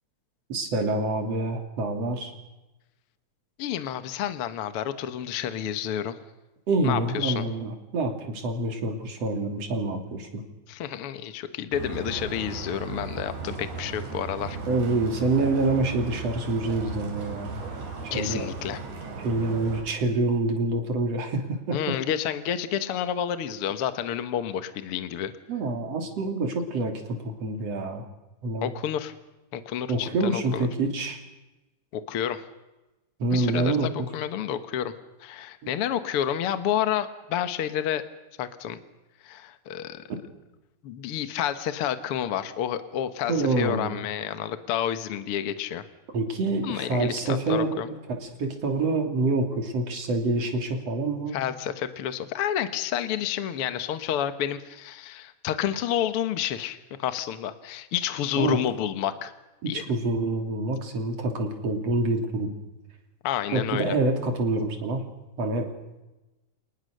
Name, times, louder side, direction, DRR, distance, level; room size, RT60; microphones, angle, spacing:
voice 1, 0.5-2.3 6.7-10.4 14.7-17.6 18.0-18.5 19.2-22.0 25.5-28.1 28.4-28.7 29.9-31.2 33.2-34.1 43.3-44.0 46.1-47.8 48.1-51.4 58.4-58.6 59.6-62.5 63.5-65.0 65.4-65.7, right 2 dB, 55° right, 4 dB, 4.0 m, -27 dB
voice 2, 3.6-6.2 6.8-7.4 10.7-14.6 18.1-18.8 21.7-25.3 28.6-29.1 29.5-30.7 31.9-32.4 33.3-34.9 35.2-38.0 38.4-38.8 39.2-40.0 40.8-45.8 46.6-47.9 51.3-59.3 59.7-59.8 63.2-64.0, left 10 dB, 60° left, 11 dB, 1.8 m, -30 dB
sound 1, 11.7-19.8, right 4 dB, 85° right, 4.7 m, -36 dB
27.5 x 20.0 x 6.6 m, 1.0 s
omnidirectional pair, 3.4 m